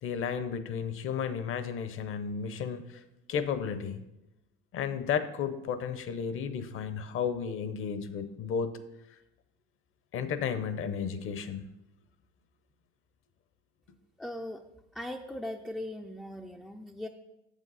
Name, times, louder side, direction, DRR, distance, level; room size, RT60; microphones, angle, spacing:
voice 1, 0.0-3.0 3.3-4.0 4.7-8.8 10.1-11.6, left 7 dB, 45° left, 11 dB, 0.9 m, -33 dB
voice 2, 14.2-14.6 14.9-17.1, left 1 dB, ahead, 2 dB, 0.4 m, -39 dB
8.3 x 7.0 x 4.1 m, 0.92 s
supercardioid pair, 100°, 29 cm